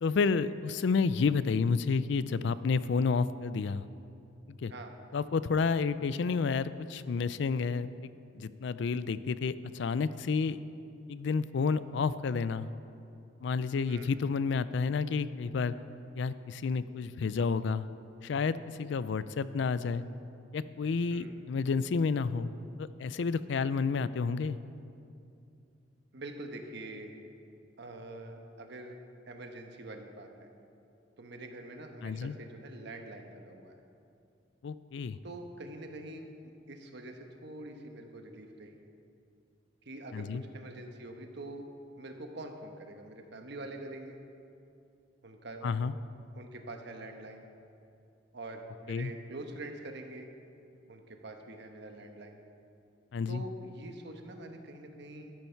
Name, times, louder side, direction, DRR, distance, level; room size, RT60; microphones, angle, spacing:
voice 1, 0.0-3.8 4.5-4.7 5.1-8.1 8.4-10.6 11.1-12.7 13.4-15.7 16.1-17.9 18.2-20.0 20.5-22.5 22.8-24.6 32.0-32.3 34.6-35.2 40.1-40.4 45.6-45.9 48.9-49.1 53.1-53.4, left 5 dB, 65° left, 15 dB, 0.4 m, -30 dB
voice 2, 26.1-27.1 27.8-29.0 29.3-30.5 31.2-33.8 35.2-36.3 36.7-38.8 39.8-41.7 42.0-44.2 45.2-45.7 46.3-47.4 48.3-50.3 50.9-52.4 53.3-55.3, right 2 dB, 60° right, 4 dB, 1.1 m, -45 dB
12.5 x 11.0 x 4.5 m, 2.6 s
head